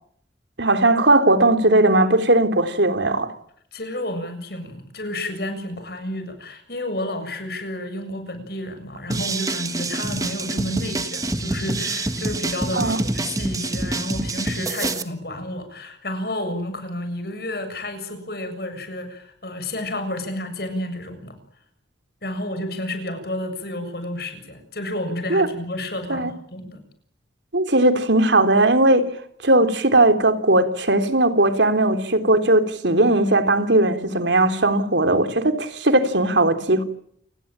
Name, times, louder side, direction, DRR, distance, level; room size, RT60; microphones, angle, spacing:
voice 1, 0.6-3.3 12.7-13.0 25.3-25.5 26.1-26.3 27.5-29.1 29.4-36.8, right 2 dB, 75° right, 3.5 m, -18 dB
voice 2, 3.7-21.4 22.2-26.8, left 1 dB, 55° left, 7.2 m, -31 dB
sound 1, 9.1-15.0, right 2 dB, 20° right, 1.5 m, -26 dB
29.0 x 20.0 x 9.0 m
head